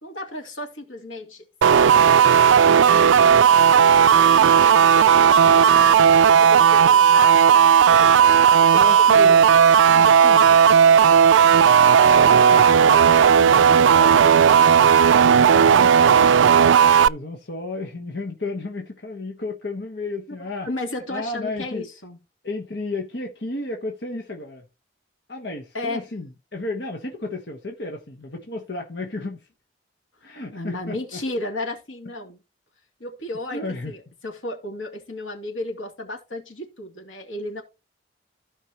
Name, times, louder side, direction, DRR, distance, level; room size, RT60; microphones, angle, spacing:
voice 1, 0.0-8.2 8.6-8.9 9.1-9.4 9.7-11.1 11.4-11.7 20.3-20.4 20.6-22.2 25.7-26.0 30.5-32.4 33.0-37.6, left 1 dB, 90° left, 2.9 m, -35 dB
sound 1, 1.6-17.1, right 7 dB, 80° right, 0.4 m, -14 dB
voice 2, 8.7-9.6 9.9-10.5 12.1-20.7 21.1-21.8 22.4-24.6 25.3-29.5 30.2-31.2 33.5-33.9, left 2 dB, 60° left, 1.3 m, -33 dB
15.5 x 5.3 x 3.0 m
head